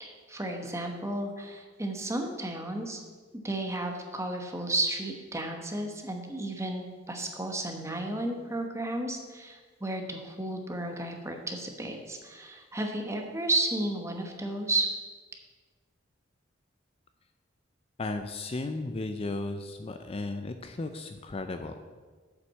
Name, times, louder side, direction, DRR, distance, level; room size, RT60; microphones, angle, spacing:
voice 1, 0.0-3.0 3.4-14.9, right 2 dB, 15° right, 3 dB, 1.1 m, -33 dB
voice 2, 18.0-21.7, left 2 dB, 30° left, 8 dB, 0.4 m, -35 dB
7.8 x 5.9 x 7.3 m, 1.4 s
head